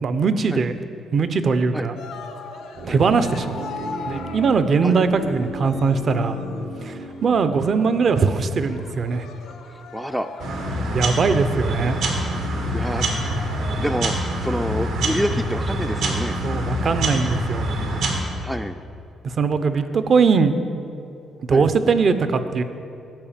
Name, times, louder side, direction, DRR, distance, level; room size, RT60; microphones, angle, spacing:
voice 1, 0.0-0.7 1.1-2.0 2.9-6.4 6.8-9.3 10.9-12.0 16.4-17.7 19.2-20.5 21.5-22.6, right 4 dB, 50° right, 11 dB, 0.6 m, -20 dB
Cheering, 2.0-14.4, left 4 dB, 85° left, 0.7 m, -40 dB
sound 1, 2.7-8.8 9.0-9.1, right 2 dB, 65° right, 1.0 m, -35 dB
voice 2, 9.7-10.3 12.7-13.5 13.8-16.4 18.4-18.8 21.5-21.7, equal, 5° right, 7 dB, 0.3 m, -28 dB
sound 2, 10.4-18.2, right 1 dB, 85° right, 1.4 m, -25 dB
9.0 x 5.0 x 7.3 m, 2.7 s
cardioid pair, 90°, 0 cm